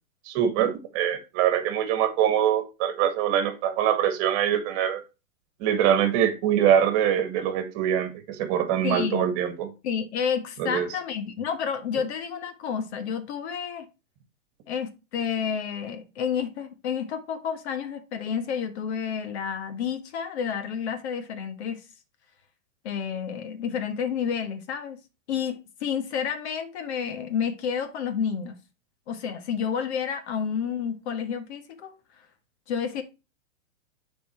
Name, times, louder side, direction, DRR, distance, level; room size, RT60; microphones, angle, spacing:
voice 1, 0.3-5.0 5.6-9.7 10.6-10.9, right 9 dB, 35° right, 1.7 m, -24 dB
voice 2, 8.8-9.2 9.8-13.9 14.7-21.8 22.8-25.0 25.3-28.6 29.1-31.9 32.7-33.0, left 7 dB, 55° left, 1.6 m, -30 dB
7.1 x 4.5 x 4.3 m
hypercardioid pair, 140°, 40 cm